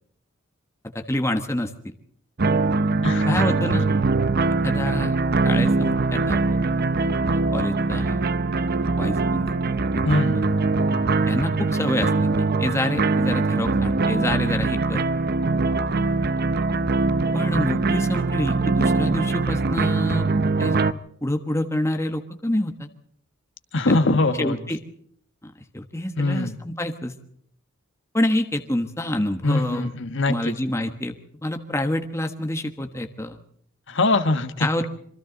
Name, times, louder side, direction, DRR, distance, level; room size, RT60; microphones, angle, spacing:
voice 1, 0.9-1.7 3.2-3.9 4.6-5.1 5.4-6.6 7.2-8.2 9.0-10.1 11.3-15.0 17.3-20.2 20.6-20.8 21.2-22.9 23.9-24.0 24.4-24.8 25.4-27.1 28.1-29.9 30.3-33.4 34.6-34.9, left 1 dB, 15° left, 5 dB, 1.3 m, -27 dB
sound 1, 2.4-20.9, right 3 dB, 50° right, 0.7 m, -22 dB
voice 2, 3.0-3.7 10.0-10.5 23.7-24.6 26.2-26.6 29.4-30.5 33.9-34.7, left 2 dB, 60° left, 8 dB, 1.6 m, -22 dB
26.5 x 24.5 x 4.0 m, 0.66 s
head